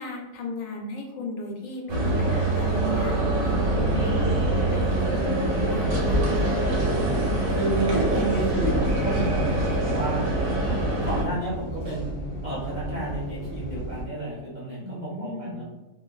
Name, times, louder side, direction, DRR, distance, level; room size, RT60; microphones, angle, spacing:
voice 1, 0.0-6.6 14.8-15.6, left 2 dB, 80° left, 0 dB, 1.0 m, -35 dB
sound 1, 1.9-11.2, right 2 dB, 85° right, 1.1 m, -24 dB
sound 2, 3.7-14.0, equal, 20° left, 0.8 m, -35 dB
voice 2, 7.5-12.1 12.4-15.6, right 1 dB, 50° right, -8 dB, 0.6 m, -31 dB
2.7 x 2.1 x 2.3 m, 1.1 s
omnidirectional pair, 1.4 m